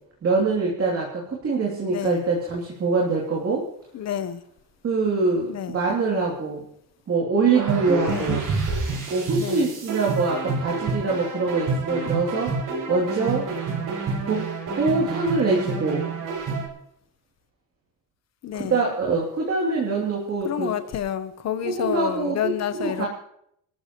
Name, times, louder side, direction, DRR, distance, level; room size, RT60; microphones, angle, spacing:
voice 1, 0.2-3.6 4.8-6.6 7.1-8.5 9.1-12.5 12.9-13.5 14.3-14.5 14.7-16.1 18.7-20.7 21.6-22.4 22.8-23.1, right 4 dB, 35° right, 2.9 m, -24 dB
voice 2, 1.9-2.3 3.9-4.4 5.5-5.8 8.1-8.4 9.3-9.7 18.4-18.8 20.4-23.0, left 10 dB, 45° left, 0.9 m, -29 dB
sound 1, 7.5-16.7, right 4 dB, 55° right, 5.5 m, -28 dB
25.0 x 13.5 x 3.0 m
cardioid pair, 160°, 38 cm